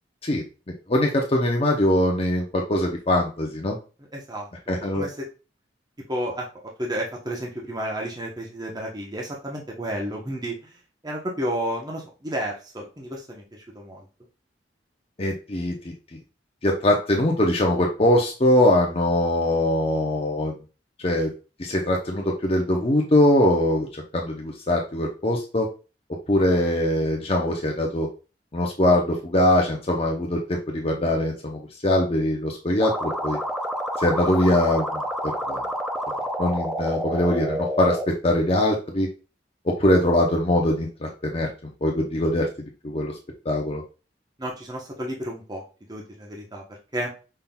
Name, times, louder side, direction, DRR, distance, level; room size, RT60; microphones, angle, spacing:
voice 1, 0.9-3.8 4.7-5.1 15.2-15.9 16.6-20.5 21.0-21.3 21.6-23.9 24.1-25.7 26.3-28.1 28.5-33.4 34.0-35.6 36.4-39.1 39.8-41.5 41.8-42.5 42.8-43.1 43.5-43.8, left 1 dB, 35° left, 0 dB, 0.7 m, -22 dB
voice 2, 4.1-4.5 4.9-5.3 6.1-6.5 6.8-10.5 11.0-13.4 13.7-14.0 44.4-45.6 45.9-46.6 46.9-47.1, right 1 dB, 25° right, -1 dB, 0.9 m, -31 dB
sound 1, 32.8-38.0, equal, ahead, 0.5 m, -29 dB
5.6 x 3.7 x 2.3 m, 0.33 s
head